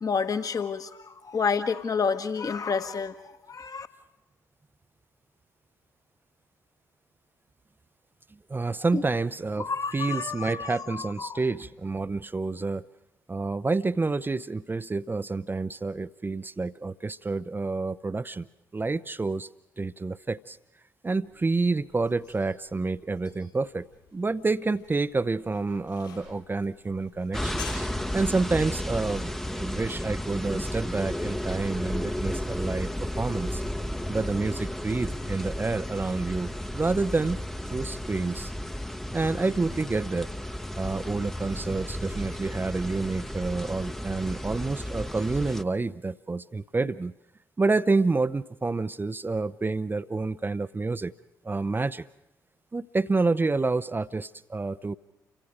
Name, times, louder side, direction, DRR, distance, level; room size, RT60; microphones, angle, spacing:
voice 1, 0.0-3.9 8.9-9.0 9.6-11.4, left 5 dB, 40° left, 9 dB, 1.5 m, -29 dB
voice 2, 8.5-12.8 13.3-18.5 18.7-19.5 19.8-20.6 21.0-23.9 24.1-27.6 28.1-32.9 33.2-33.6 34.1-37.4 37.7-38.5 39.1-40.3 40.8-47.1 47.6-51.1 51.4-52.0 52.7-54.9, right 3 dB, 20° right, 12 dB, 0.7 m, -28 dB
sound 1, 21.1-28.2, left 7 dB, 75° left, 7.4 m, -50 dB
sound 2, 27.3-45.6, left 1 dB, 5° left, 1.0 m, -33 dB
29.0 x 24.5 x 5.0 m, 0.90 s
figure-of-eight pair, 40°, 10 cm